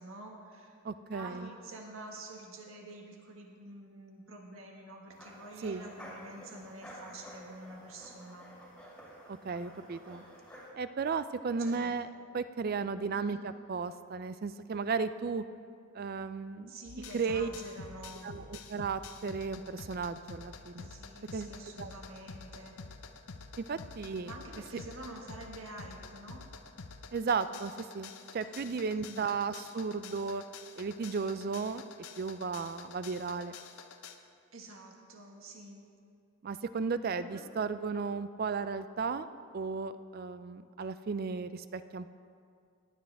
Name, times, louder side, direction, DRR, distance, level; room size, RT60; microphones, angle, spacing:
voice 1, 0.0-0.8 1.0-8.5 11.6-12.0 13.1-13.4 16.7-18.3 20.8-22.8 24.2-26.4 28.4-29.3 34.5-35.8 37.0-37.6 38.3-38.4, right 2 dB, 65° right, 1 dB, 1.6 m, -48 dB
voice 2, 0.8-1.5 5.6-5.9 9.3-10.2 10.7-12.1 12.3-15.4 15.9-16.7 17.1-17.5 18.2-20.9 21.3-21.5 21.8-21.9 23.6-24.3 27.1-30.4 30.8-31.8 32.2-33.5 36.4-39.3 39.5-42.1, right 5 dB, 40° right, 13 dB, 0.3 m, -35 dB
sound 1, 5.1-10.7, equal, 5° left, 2.4 m, -51 dB
sound 2, 16.9-34.2, left 4 dB, 80° left, 0.7 m, -48 dB
17.5 x 10.0 x 3.5 m, 2.3 s
head